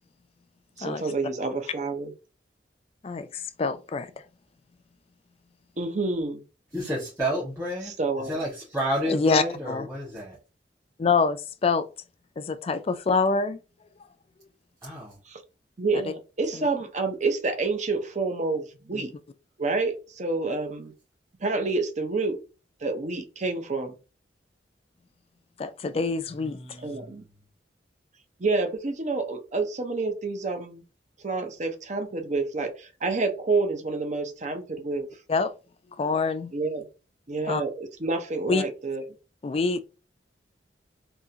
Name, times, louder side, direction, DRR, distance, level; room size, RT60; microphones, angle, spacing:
voice 1, 0.8-2.1 5.8-6.4 8.0-8.3 15.3-15.4 15.8-19.1 19.6-20.9 21.4-22.4 22.8-23.9 26.8-27.2 28.4-30.8 31.2-35.1 36.5-36.8 37.3-39.0, right 3 dB, 40° right, 0.6 m, -28 dB
voice 2, 3.0-4.1 9.1-9.9 11.0-11.9 12.4-13.6 16.5-16.7 18.9-19.0 25.6-26.8 35.3-35.5 36.0-36.5 37.5-37.6 38.5-38.6 39.4-39.8, left 4 dB, 35° left, 0.3 m, -26 dB
voice 3, 6.7-7.9 8.2-10.4 14.8-15.2 26.3-27.3, equal, 15° right, 1.5 m, -31 dB
3.7 x 2.8 x 2.8 m
head